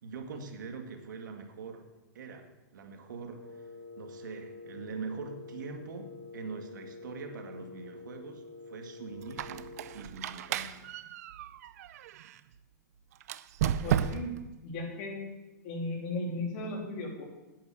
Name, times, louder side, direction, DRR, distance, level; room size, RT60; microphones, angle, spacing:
voice 1, 0.0-3.7 4.0-10.9, right 4 dB, 85° right, 5 dB, 1.9 m, -43 dB
Wind instrument woodwind instrument, 3.3-10.1, left 3 dB, 15° right, 4.9 m, -47 dB
Squeak, 9.2-12.4 13.2-14.5, right 10 dB, 55° right, 0.5 m, -34 dB
voice 2, 13.8-14.3 14.6-15.2 15.6-17.2, left 2 dB, 40° left, 0 dB, 3.2 m, -35 dB
8.6 x 8.0 x 8.6 m, 1.1 s
supercardioid pair, 160°, 10 cm